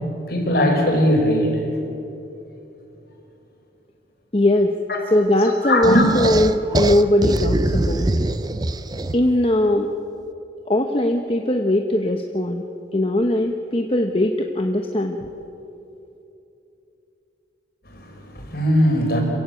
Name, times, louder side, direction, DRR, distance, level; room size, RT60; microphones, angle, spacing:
voice 1, 0.3-1.6 4.9-5.1 5.4-6.1 17.9-19.2, equal, 55° left, 1 dB, 5.2 m, -20 dB
voice 2, 4.3-4.7 5.1-8.1 9.1-9.9 10.7-12.6 12.9-15.3, left 1 dB, 30° left, 4 dB, 0.9 m, -20 dB
sound 1, 5.8-9.4, right 2 dB, 20° right, 0.5 m, -23 dB
27.0 x 15.5 x 8.9 m, 2.9 s
head